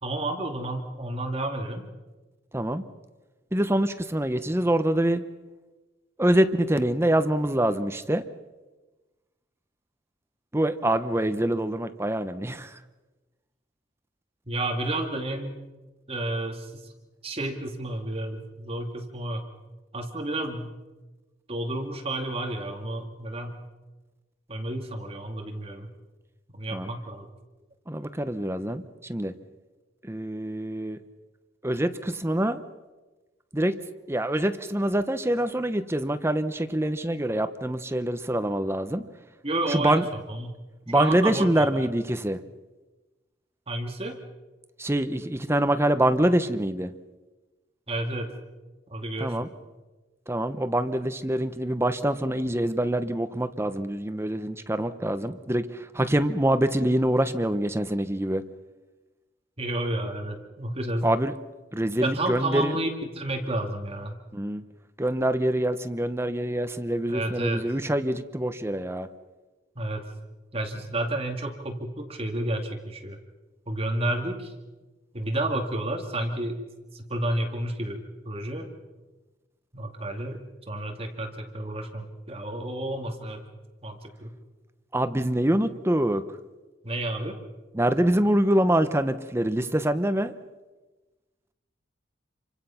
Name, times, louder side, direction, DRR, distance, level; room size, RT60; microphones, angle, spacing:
voice 1, 0.0-1.9 14.5-15.6 16.1-16.9 17.2-19.4 19.9-20.7 21.5-23.6 24.5-25.9 26.5-27.3 39.4-40.5 40.9-41.7 43.7-44.2 47.9-48.3 48.9-49.5 59.6-61.1 62.0-64.1 67.1-67.6 69.8-70.0 70.5-73.2 73.7-74.5 75.1-76.6 76.9-78.7 79.7-83.4 83.8-84.3 86.8-87.4, right 1 dB, 30° right, 3 dB, 2.4 m, -31 dB
voice 2, 2.5-2.8 3.5-5.2 6.2-8.2 10.5-12.8 26.7-26.9 27.9-29.3 30.0-31.0 31.6-32.6 33.5-33.8 34.1-39.0 39.7-40.0 40.9-42.4 44.8-46.9 49.2-49.5 50.3-58.4 61.0-61.3 61.7-62.8 64.3-64.6 65.0-69.1 84.9-86.2 87.7-90.3, right 1 dB, 15° right, 10 dB, 0.9 m, -25 dB
28.5 x 24.5 x 5.8 m, 1.2 s
head